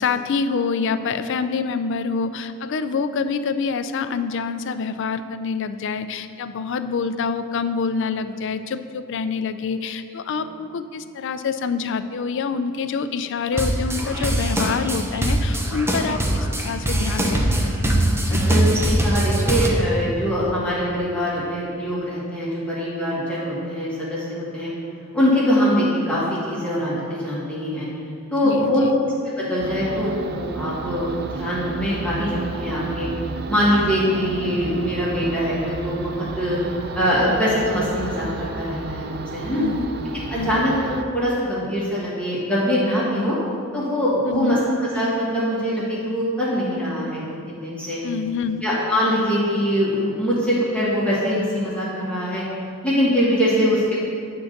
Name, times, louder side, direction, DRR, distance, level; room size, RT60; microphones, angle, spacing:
voice 1, 0.0-17.8 18.3-18.4 28.4-29.0 39.6-39.9 40.3-40.6 44.2-44.6 48.0-48.6, left 5 dB, 60° left, 11 dB, 0.4 m, -26 dB
sound 1, 13.5-19.7, right 1 dB, 10° right, 0.7 m, -22 dB
voice 2, 18.3-24.7 25.1-27.9 28.3-28.8 29.4-33.1 33.5-36.6 36.9-39.6 40.3-43.3 43.7-48.0 48.6-52.4 52.8-54.0, equal, 5° left, -8 dB, 1.6 m, -23 dB
sound 2, 29.6-41.0, right 3 dB, 50° right, 0.4 m, -32 dB
9.5 x 3.8 x 6.5 m, 2.4 s
head